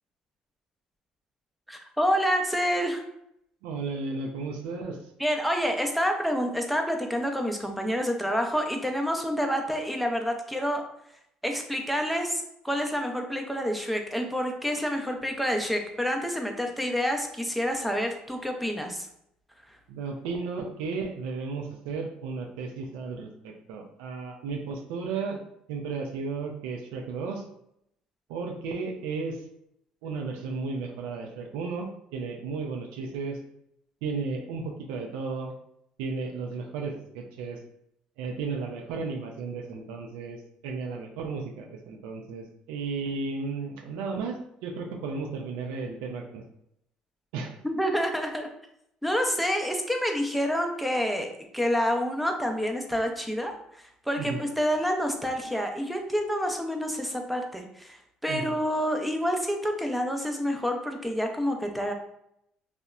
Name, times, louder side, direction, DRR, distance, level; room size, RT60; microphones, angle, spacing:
voice 1, 1.7-3.0 5.2-10.8 11.4-19.1 47.6-48.5 49.0-53.5 54.1-61.9, equal, ahead, 3 dB, 0.5 m, -28 dB
voice 2, 3.6-5.0 19.9-25.4 25.7-27.4 28.3-29.4 30.0-33.4 34.0-35.5 36.0-37.6 38.2-46.4 47.3-47.5 54.2-54.4 58.3-58.5, right 4 dB, 85° right, 3 dB, 0.3 m, -34 dB
2.8 x 2.0 x 2.3 m, 0.75 s
supercardioid pair, 70°, 3 cm